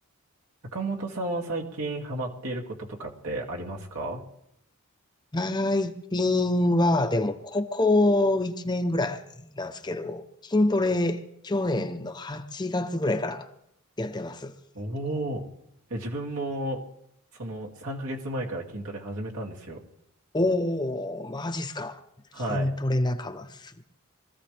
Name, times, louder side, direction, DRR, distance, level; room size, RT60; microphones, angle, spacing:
voice 1, 0.7-4.2 14.7-15.5 15.9-16.8 17.3-19.8 22.3-22.8, right 1 dB, 75° right, 2.5 m, -32 dB
voice 2, 5.3-13.5 14.0-14.5 20.3-22.0 22.5-23.8, left 2 dB, 20° left, 0.7 m, -26 dB
24.5 x 14.5 x 3.4 m
head